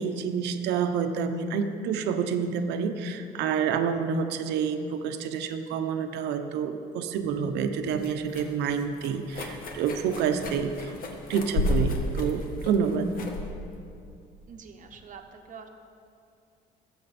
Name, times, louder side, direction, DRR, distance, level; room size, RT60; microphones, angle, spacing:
voice 1, 0.0-10.9 11.3-13.1, right 6 dB, 85° right, 7 dB, 0.9 m, -28 dB
sound 1, 7.2-15.0, left 2 dB, 55° left, 1.7 m, -33 dB
voice 2, 14.5-15.7, right 6 dB, 50° right, 5 dB, 1.2 m, -46 dB
19.5 x 7.7 x 4.3 m, 2.5 s
cardioid pair, 110°, 17 cm